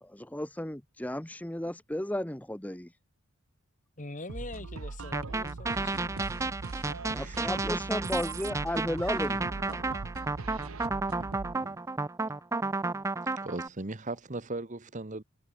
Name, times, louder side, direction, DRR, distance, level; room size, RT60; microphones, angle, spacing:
voice 1, 0.0-2.9 7.1-9.8, left 1 dB, 5° left, 0.8 m, -34 dB
voice 2, 4.0-6.9, left 2 dB, 35° left, 1.9 m, -44 dB
sound 1, 4.3-11.7, right 3 dB, 70° right, 0.9 m, -40 dB
sound 2, 5.1-13.7, right 3 dB, 15° right, 0.4 m, -32 dB
voice 3, 7.1-7.7 11.5-11.8 13.4-15.2, right 2 dB, 35° right, 1.1 m, -38 dB
head